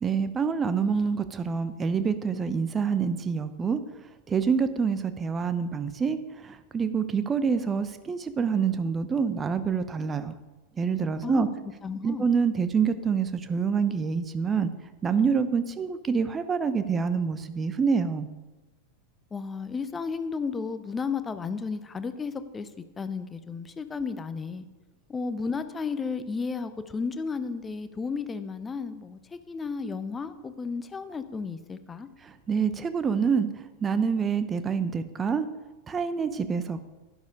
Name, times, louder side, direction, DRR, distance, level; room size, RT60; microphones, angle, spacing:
voice 1, 0.0-3.8 4.3-10.4 10.8-11.5 12.0-14.7 15.0-18.3 32.2-33.5 33.8-35.5 35.9-36.8, right 6 dB, 20° right, 11 dB, 0.9 m, -26 dB
voice 2, 11.8-12.3 19.3-22.7 23.0-24.7 25.1-32.1, left 5 dB, 15° left, 12 dB, 0.8 m, -33 dB
11.5 x 11.0 x 5.0 m, 1.1 s
figure-of-eight pair, 90°, 0 cm